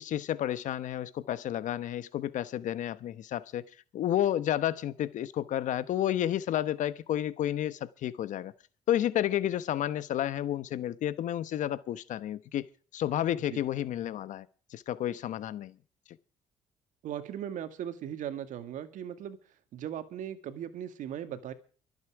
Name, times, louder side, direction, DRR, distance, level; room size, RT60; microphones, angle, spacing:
voice 1, 0.0-3.6 3.9-8.5 8.9-12.6 12.9-15.7, left 11 dB, 65° left, 1.0 m, -31 dB
voice 2, 17.0-19.4 19.7-21.5, right 10 dB, 70° right, 1.9 m, -38 dB
24.0 x 8.4 x 4.8 m
supercardioid pair, 75°, 14 cm